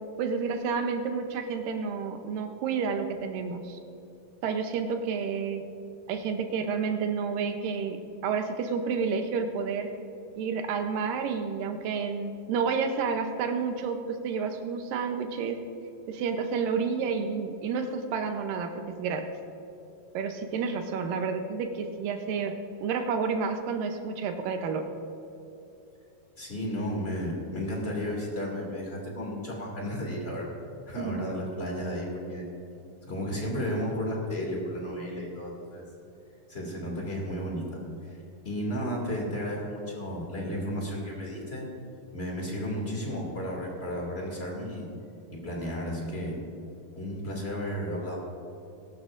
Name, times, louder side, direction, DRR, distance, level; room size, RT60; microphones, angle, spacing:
voice 1, 0.2-3.8 4.4-5.6 6.1-9.9 10.4-15.6 16.1-19.3 20.1-24.9 31.0-31.3, right 5 dB, 80° right, 6 dB, 2.5 m, -30 dB
voice 2, 26.4-30.5 30.9-32.4 33.0-35.8 36.5-38.2 38.4-41.7 42.1-44.9 45.3-46.4 46.9-48.2, equal, 20° left, -2 dB, 2.0 m, -33 dB
21.0 x 12.0 x 2.5 m, 2.8 s
omnidirectional pair, 4.0 m